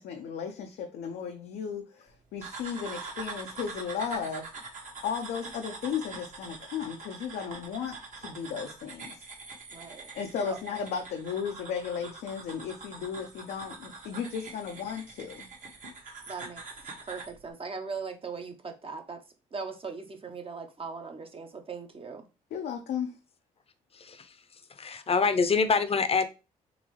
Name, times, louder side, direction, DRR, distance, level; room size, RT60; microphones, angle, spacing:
voice 1, 0.0-4.5 5.0-9.1 10.1-15.5 22.5-23.2, left 7 dB, 70° left, 0.6 m, -35 dB
sound 1, 2.4-17.4, right 3 dB, 50° right, 1.3 m, -44 dB
voice 2, 9.7-10.1 10.4-10.6 16.3-16.6 17.0-19.2 19.5-22.3, right 5 dB, 35° right, 0.8 m, -39 dB
voice 3, 23.9-24.3 24.8-26.2, left 5 dB, 35° left, 0.7 m, -25 dB
3.9 x 3.1 x 3.1 m
supercardioid pair, 55°, 17 cm